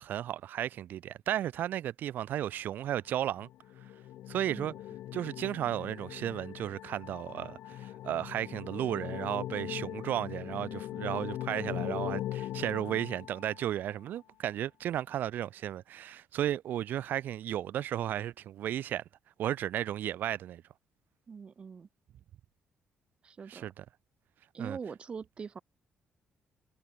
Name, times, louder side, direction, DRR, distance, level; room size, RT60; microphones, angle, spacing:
voice 1, 0.0-3.5 4.3-4.7 5.1-19.0 19.4-20.6 23.5-23.8 24.6-24.8, right 11 dB, 70° right, 2.5 m, -34 dB
sound 1, 3.4-13.9, left 13 dB, 80° left, 2.8 m, -40 dB
voice 2, 4.5-4.8 21.3-21.9 23.2-23.7 24.5-25.6, right 5 dB, 35° right, 2.9 m, -43 dB
cardioid pair, 135°, 3 cm